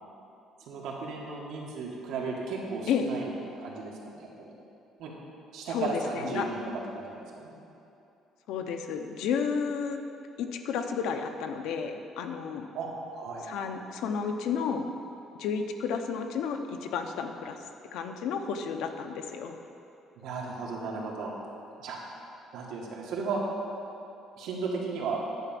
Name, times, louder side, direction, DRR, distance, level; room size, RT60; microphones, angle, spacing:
voice 1, 0.7-3.3 3.6-4.5 5.0-5.1 5.5-6.6 7.0-7.5 12.7-13.4 20.2-21.3 21.8-22.0 22.5-23.4 24.4-25.2, right 4 dB, 70° right, -2 dB, 1.8 m, -35 dB
voice 2, 5.7-6.5 8.5-10.0 10.4-12.7 13.5-14.9 15.4-17.6 17.9-19.6, left 6 dB, 75° left, 5 dB, 0.7 m, -32 dB
10.5 x 5.1 x 7.5 m, 2.8 s
cardioid pair, 160°, 0 cm